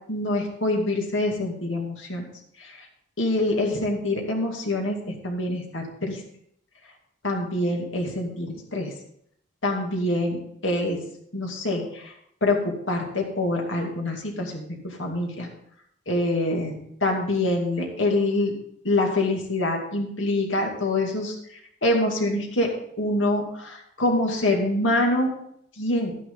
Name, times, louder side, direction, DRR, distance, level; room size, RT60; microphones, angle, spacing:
voice 1, 0.1-2.2 2.6-2.8 3.2-6.2 7.2-8.9 9.6-11.0 11.3-12.1 12.4-15.5 16.1-18.5 18.8-21.3 21.8-22.7 23.0-25.3 25.8-26.1, left 1 dB, 90° left, 1 dB, 2.4 m, -25 dB
12.0 x 10.0 x 3.9 m, 0.70 s
head